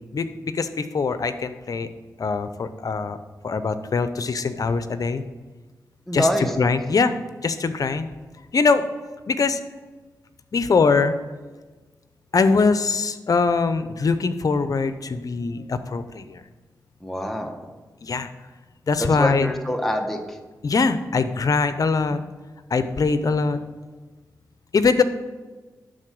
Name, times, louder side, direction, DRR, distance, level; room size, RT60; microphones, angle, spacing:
voice 1, 0.1-1.9 2.2-3.2 3.4-5.2 6.1-6.3 6.6-7.1 7.4-8.1 8.5-8.8 9.3-9.6 10.5-11.1 12.3-16.4 18.0-18.3 18.9-19.5 20.6-22.2 22.7-23.6 24.7-25.0, left 4 dB, 60° left, 11 dB, 0.7 m, -22 dB
voice 2, 6.1-6.6 17.0-17.5 19.0-20.4, equal, 5° left, 3 dB, 1.3 m, -25 dB
11.5 x 4.0 x 7.7 m, 1.3 s
cardioid pair, 60°, 7 cm